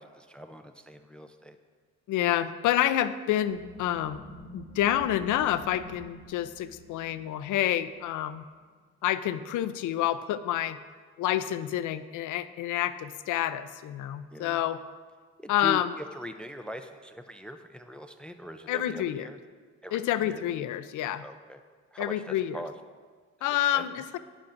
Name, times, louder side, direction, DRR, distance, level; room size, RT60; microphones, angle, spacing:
voice 1, 0.0-1.6 14.3-14.6 15.4-19.4 19.8-20.4 21.2-21.6 21.9-22.7 23.4-23.8, equal, 5° left, 7 dB, 0.5 m, -42 dB
voice 2, 2.1-4.2 4.5-8.4 9.0-10.8 11.2-14.8 15.5-15.9 18.7-19.2 19.9-21.2 22.0-22.6 23.4-24.2, left 12 dB, 80° left, 12 dB, 0.6 m, -28 dB
sound 1, 3.5-8.7, equal, 90° right, 2.3 m, -48 dB
12.0 x 10.0 x 2.6 m, 1.5 s
cardioid pair, 90°, 30 cm